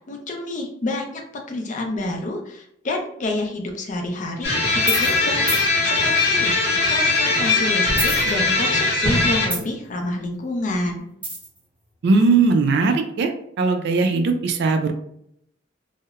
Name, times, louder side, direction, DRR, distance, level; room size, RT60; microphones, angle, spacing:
voice 1, 0.1-11.0, left 2 dB, 40° left, 2 dB, 0.5 m, -28 dB
sound 1, 4.4-9.5, left 3 dB, 60° left, 0.8 m, -20 dB
sound 2, 4.8-5.2 5.5-5.6 7.9-8.7 9.0-9.9 11.2-11.6, right 1 dB, 10° right, 0.8 m, -26 dB
voice 2, 12.0-13.3 13.6-14.9, right 4 dB, 60° right, 6 dB, 0.4 m, -19 dB
2.8 x 2.0 x 2.3 m, 0.72 s
head